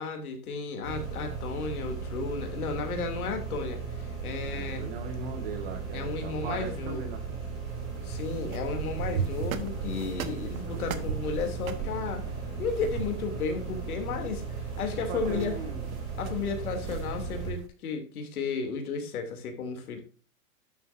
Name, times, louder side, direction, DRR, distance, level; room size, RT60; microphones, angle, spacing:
voice 1, 0.0-4.9 5.9-7.0 8.0-12.2 12.6-15.6 16.2-20.0, left 5 dB, 65° left, 5 dB, 3.0 m, -33 dB
sound 1, 0.8-17.5, right 5 dB, 5° right, 0.4 m, -37 dB
voice 2, 4.4-7.4 15.0-15.9, right 5 dB, 35° right, 4 dB, 1.7 m, -39 dB
sound 2, 7.7-17.7, right 7 dB, 60° right, 1.4 m, -39 dB
sound 3, 8.8-14.5, left 8 dB, 30° left, 0.7 m, -49 dB
11.5 x 7.3 x 2.7 m, 0.37 s
hypercardioid pair, 170°, 47 cm